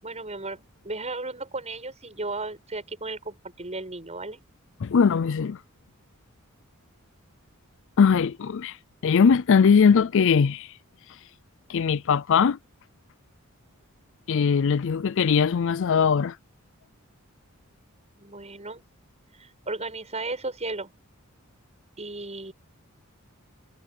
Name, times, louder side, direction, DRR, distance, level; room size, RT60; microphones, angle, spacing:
voice 1, 0.0-4.4 18.2-18.8 19.4-20.9 22.0-22.5, right 2 dB, 30° right, 7.6 m, -35 dB
voice 2, 4.8-5.6 8.0-8.8 9.0-10.7 11.7-12.6 14.3-16.4, left 6 dB, 60° left, 0.4 m, -20 dB
head